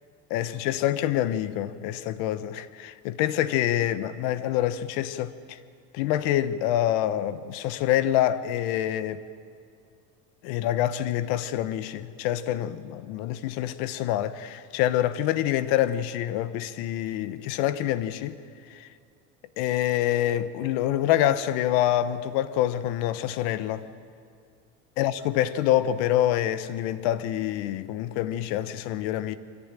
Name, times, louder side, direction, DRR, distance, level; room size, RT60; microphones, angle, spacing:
voice 1, 0.3-5.6 5.9-9.2 10.4-18.4 18.7-18.9 19.6-23.9 25.0-29.4, left 12 dB, 70° left, 1.2 m, -26 dB
24.5 x 14.5 x 9.0 m
supercardioid pair, 120°, 40 cm